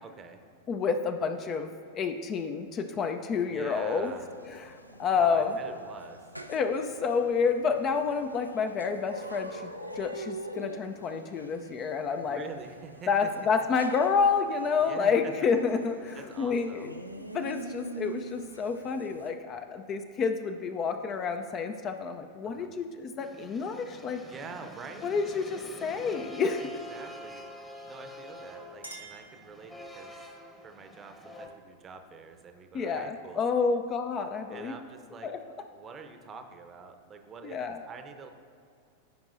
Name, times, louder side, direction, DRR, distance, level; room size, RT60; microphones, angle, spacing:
voice 1, 0.0-0.4 3.5-4.3 5.1-6.3 12.2-13.3 13.6-13.7 14.8-15.3 16.1-16.9 22.4-22.7 24.1-25.1 26.6-27.4 27.8-30.2 30.6-33.4 34.5-35.3 35.7-38.3, right 5 dB, 25° right, 7 dB, 0.7 m, -46 dB
voice 2, 0.7-4.1 4.4-5.6 6.5-12.4 13.1-16.9 17.3-24.2 25.0-26.7 32.7-34.7 35.2-35.4 37.4-37.8, left 5 dB, 30° left, 7 dB, 0.5 m, -29 dB
sound 1, 3.7-19.3, right 2 dB, 90° right, 0.4 m, -45 dB
sound 2, 23.2-31.5, left 1 dB, 10° left, 1.0 m, -46 dB
Chink clink, 28.8-30.1, right 2 dB, 85° left, 1.2 m, -49 dB
15.0 x 5.3 x 2.6 m, 2.3 s
figure-of-eight pair, 90°, 0 cm